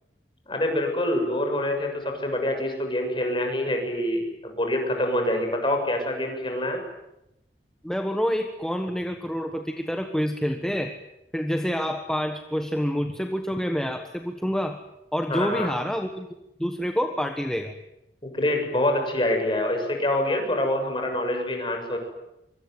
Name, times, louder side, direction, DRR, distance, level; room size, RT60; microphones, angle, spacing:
voice 1, 0.5-6.8 15.3-15.7 18.2-22.0, left 1 dB, 30° left, 4 dB, 7.1 m, -26 dB
voice 2, 7.8-11.0 11.3-14.8 15.1-16.3 16.6-17.7, equal, 5° left, 5 dB, 1.3 m, -27 dB
24.5 x 24.5 x 9.5 m, 0.88 s
head